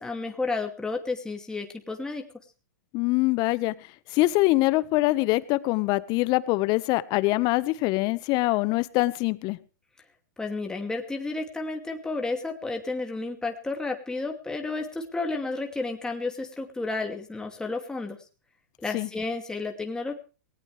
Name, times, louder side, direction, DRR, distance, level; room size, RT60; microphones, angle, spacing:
voice 1, 0.0-2.2 10.4-18.2 18.8-20.1, left 3 dB, 5° left, 3 dB, 2.5 m, -31 dB
voice 2, 2.9-3.7 4.1-9.6 18.9-19.1, left 20 dB, 40° left, 16 dB, 1.3 m, -24 dB
18.5 x 18.5 x 3.4 m, 0.35 s
hypercardioid pair, 115°, 10 cm